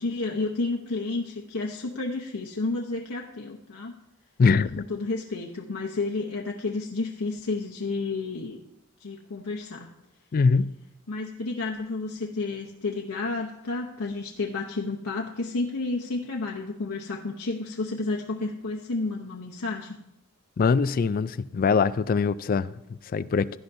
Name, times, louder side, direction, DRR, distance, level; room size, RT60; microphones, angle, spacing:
voice 1, 0.0-3.9 4.6-8.6 9.0-9.9 11.1-20.0, left 3 dB, 85° left, 0.8 m, -31 dB
voice 2, 4.4-4.8 10.3-10.7 20.6-23.5, left 5 dB, 40° left, 0.3 m, -23 dB
16.0 x 11.5 x 2.7 m
head